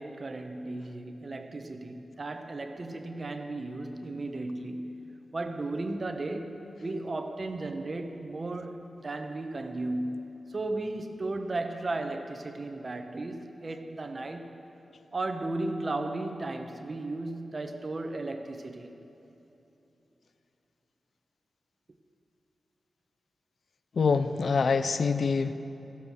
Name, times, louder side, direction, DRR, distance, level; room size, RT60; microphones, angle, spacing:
voice 1, 0.0-5.0 5.3-14.5 15.1-18.9, right 2 dB, 45° right, 6 dB, 0.9 m, -35 dB
voice 2, 24.0-25.5, left 5 dB, 70° left, 11 dB, 0.4 m, -25 dB
15.0 x 7.1 x 6.1 m, 3.0 s
cardioid pair, 60°, 0 cm